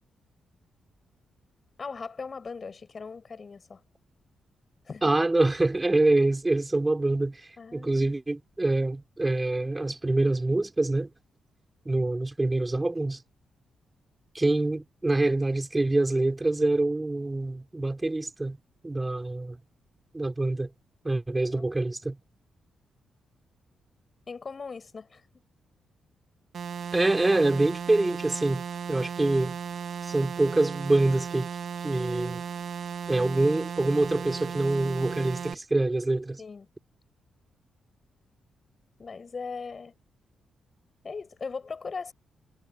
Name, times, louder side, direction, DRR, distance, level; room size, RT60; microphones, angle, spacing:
voice 1, 1.8-3.8 4.9-5.1 7.6-8.2 21.3-21.7 24.3-25.2 36.4-36.7 39.0-39.9 41.0-42.1, left 5 dB, 45° left, 7.5 m, -39 dB
voice 2, 5.0-11.1 11.9-13.2 14.3-18.6 18.8-19.6 20.1-20.7 21.0-22.2 26.9-28.6 28.9-29.6 30.0-31.5 31.8-32.4 33.1-36.4, right 2 dB, 20° right, 5.2 m, -25 dB
sound 1, 26.5-35.5, right 7 dB, 65° right, 2.5 m, -36 dB
supercardioid pair, 60°, 0 cm